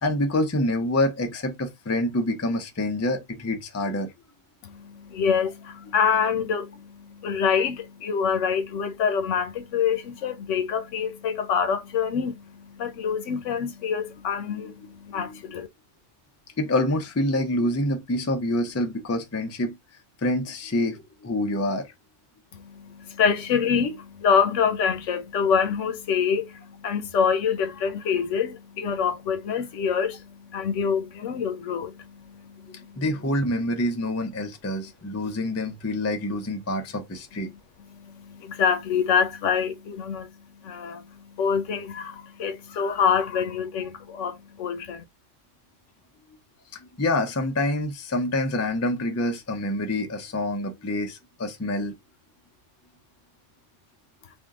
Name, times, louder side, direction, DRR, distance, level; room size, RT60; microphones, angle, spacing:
voice 1, 0.0-4.1 15.1-15.3 16.6-19.8 20.2-21.9 32.7-37.5 46.7-52.0, left 1 dB, 25° left, 0.3 m, -27 dB
voice 2, 4.6-15.7 22.5-33.0 35.2-35.3 37.5-37.6 37.9-45.0, left 6 dB, 75° left, 1.0 m, -26 dB
3.6 x 2.6 x 3.4 m
omnidirectional pair, 1.3 m